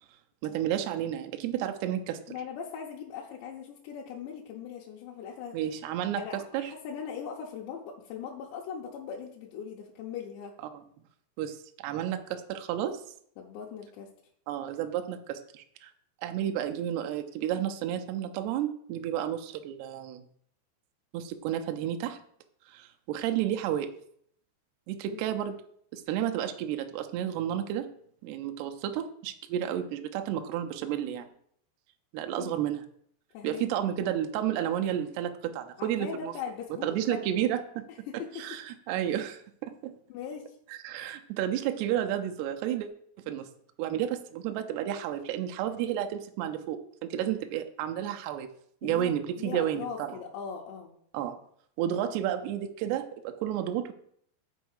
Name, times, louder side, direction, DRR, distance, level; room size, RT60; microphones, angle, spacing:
voice 1, 0.4-2.2 5.5-6.2 6.5-6.7 10.7-10.8 11.4-13.0 14.5-15.9 16.2-20.2 21.1-22.2 22.7-23.9 24.9-25.6 25.9-27.9 28.2-31.3 32.1-32.8 33.4-36.3 36.8-37.8 38.4-39.9 40.7-42.9 43.3-43.5 43.8-48.5 48.8-50.2 51.1-51.4 51.8-53.9, right 11 dB, 80° right, 6 dB, 2.6 m, -31 dB
voice 2, 2.3-5.6 6.2-10.6 13.4-14.1 25.1-25.2 32.4-32.5 33.3-33.9 35.8-37.3 37.9-38.5 40.1-40.6 48.8-49.1 49.4-50.9, left 7 dB, 80° left, -3 dB, 3.1 m, -40 dB
6.9 x 4.5 x 6.5 m, 0.65 s
omnidirectional pair, 5.0 m